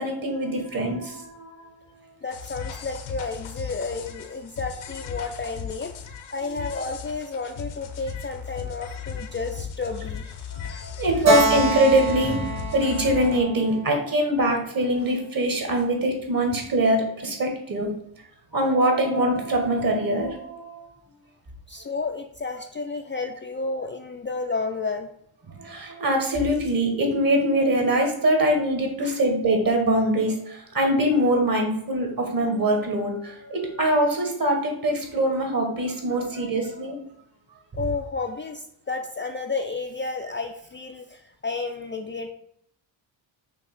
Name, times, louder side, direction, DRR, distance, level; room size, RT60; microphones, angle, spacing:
voice 1, 0.0-1.6 6.5-6.6 10.5-17.9 18.5-20.9 25.6-37.0, right 1 dB, 45° right, 3 dB, 1.8 m, -23 dB
voice 2, 2.2-5.9 6.3-10.5 21.7-25.1 29.0-29.2 36.1-36.5 37.7-42.3, left 3 dB, 25° left, 4 dB, 0.4 m, -32 dB
sound 1, 2.3-13.4, left 7 dB, 85° left, 1.0 m, -37 dB
Keyboard (musical), 11.2-14.7, right 2 dB, 75° right, 2.2 m, -27 dB
5.9 x 2.9 x 5.5 m, 0.70 s
cardioid pair, 100°, 47 cm